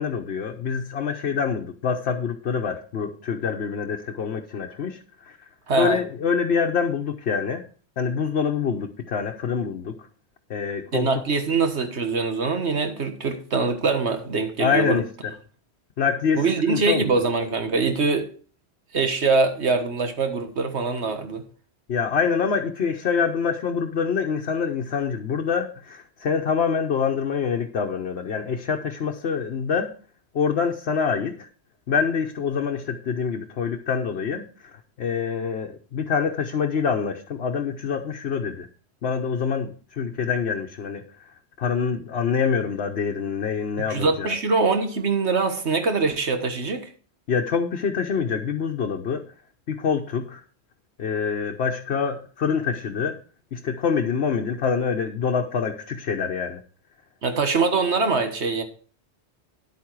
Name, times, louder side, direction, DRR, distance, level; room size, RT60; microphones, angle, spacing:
voice 1, 0.0-5.4 5.7-7.6 8.0-9.9 10.5-11.1 14.6-15.3 16.0-17.2 21.9-29.9 30.3-31.5 31.9-34.4 34.7-38.7 39.0-41.3 41.6-44.3 47.3-49.2 49.7-50.4 51.0-53.2 53.5-56.6, left 6 dB, 70° left, 1.2 m, -25 dB
voice 2, 5.7-6.0 10.9-15.0 16.4-18.3 18.9-21.4 43.9-46.9 57.2-58.6, right 4 dB, 80° right, 1.7 m, -23 dB
10.5 x 8.6 x 4.7 m
omnidirectional pair, 1.1 m